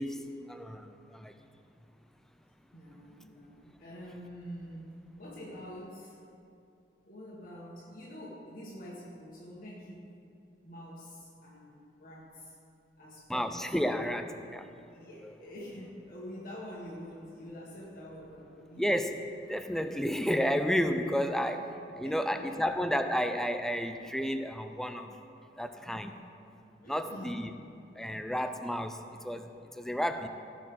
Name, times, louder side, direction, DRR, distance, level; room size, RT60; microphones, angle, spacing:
voice 1, 0.0-1.3 13.3-14.7 15.2-15.3 18.8-19.2 19.5-25.2 25.6-26.2 26.9-27.5 28.0-30.3, equal, 5° left, 7 dB, 0.4 m, -32 dB
voice 2, 2.7-6.2 7.1-10.1 10.6-12.5 13.0-13.6 14.9-18.9 21.8-22.6 26.8-27.5, equal, 50° left, -5 dB, 1.6 m, -46 dB
16.5 x 6.4 x 3.8 m, 2.7 s
head